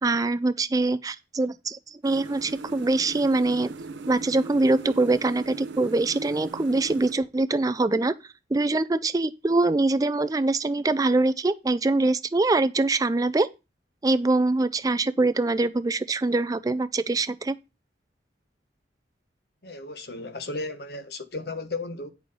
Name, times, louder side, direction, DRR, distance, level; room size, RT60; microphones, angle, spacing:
voice 1, 0.0-3.7 4.1-8.1 8.5-13.5 14.0-17.5, right 2 dB, 20° right, 0.3 m, -23 dB
sound 1, 2.0-7.1, right 3 dB, 75° right, 0.7 m, -39 dB
voice 2, 19.6-22.1, left 2 dB, 60° left, 1.1 m, -34 dB
9.6 x 4.6 x 5.4 m
head